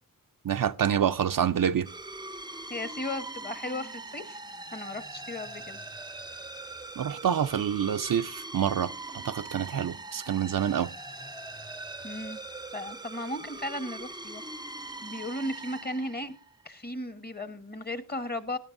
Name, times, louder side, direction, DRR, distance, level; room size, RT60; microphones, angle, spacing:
voice 1, 0.4-1.9 7.0-8.9 9.2-10.9, right 9 dB, 70° right, 0.5 m, -27 dB
sound 1, 1.8-16.6, right 2 dB, 10° right, 0.5 m, -42 dB
voice 2, 2.7-4.4 4.7-5.8 12.0-12.4 12.7-14.4 14.8-16.3 16.6-18.6, left 1 dB, 25° left, 1.2 m, -36 dB
18.0 x 10.5 x 2.6 m
wide cardioid pair, 45°, 35 cm